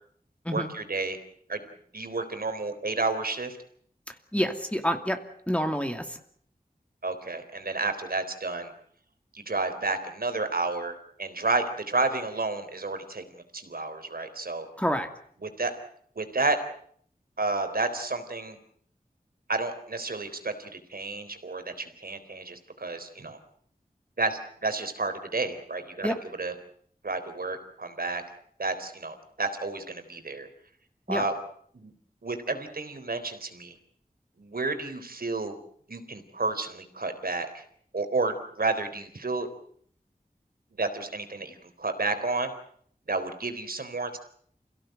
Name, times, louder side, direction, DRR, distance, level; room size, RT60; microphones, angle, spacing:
voice 1, 0.5-1.2 1.5-1.6 1.9-3.6 7.0-8.7 9.3-14.7 15.4-15.7 16.2-16.6 17.4-18.6 19.5-23.4 24.2-26.1 26.4-26.5 27.0-28.2 28.6-30.5 31.1-31.3 31.7-31.9 32.2-33.8 34.4-35.6 35.9-37.6 37.9-39.5 40.7-42.5 43.1-44.2, right 3 dB, 80° right, 9 dB, 3.9 m, -31 dB
voice 2, 4.1-5.2 5.5-6.2 14.8-15.1 26.0-26.2 31.1-31.2, equal, 10° left, 5 dB, 2.6 m, -28 dB
28.5 x 17.0 x 9.2 m, 0.64 s
wide cardioid pair, 65°, 15 cm